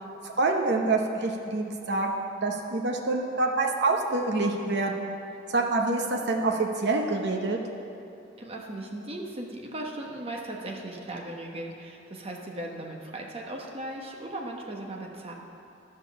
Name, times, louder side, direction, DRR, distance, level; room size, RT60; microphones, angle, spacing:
voice 1, 0.2-5.1 5.5-7.6, right 3 dB, 60° right, 1 dB, 0.9 m, -26 dB
voice 2, 8.4-15.3, right 1 dB, 30° right, 0 dB, 1.1 m, -37 dB
12.0 x 5.3 x 7.1 m, 2.7 s
head